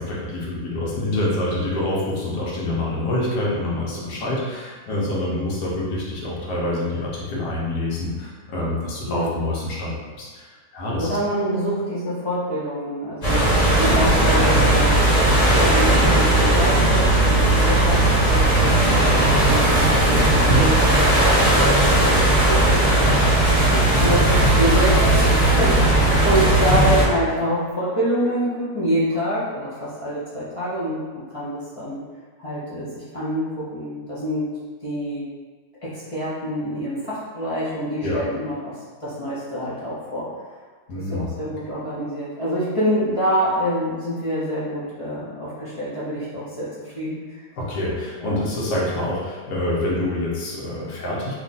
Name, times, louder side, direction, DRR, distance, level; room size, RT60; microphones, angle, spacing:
voice 1, 0.0-11.2 18.6-18.8 23.8-24.2 38.0-38.2 40.9-41.3 47.6-51.3, left 1 dB, 85° left, -5 dB, 1.4 m, -26 dB
voice 2, 11.0-19.0 19.4-20.8 21.6-22.2 22.4-32.0 32.4-34.5 34.8-35.3 35.8-40.3 40.9-47.5 48.2-48.4, equal, 55° left, -9 dB, 0.3 m, -26 dB
sound 1, 13.2-27.0, right 1 dB, 30° left, 0.9 m, -17 dB
3.1 x 2.3 x 3.9 m, 1.4 s
omnidirectional pair, 1.7 m